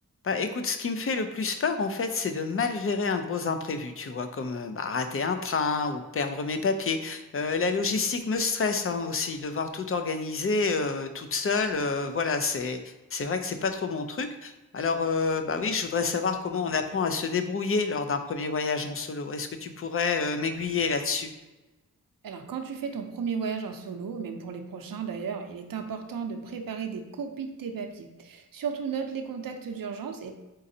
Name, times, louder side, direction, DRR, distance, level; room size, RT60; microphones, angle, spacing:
voice 1, 0.2-12.8 13.1-21.3, left 4 dB, 40° left, 7 dB, 0.5 m, -28 dB
voice 2, 22.2-30.3, right 6 dB, 80° right, 5 dB, 0.6 m, -34 dB
4.1 x 3.8 x 2.7 m, 1.1 s
wide cardioid pair, 90°, 34 cm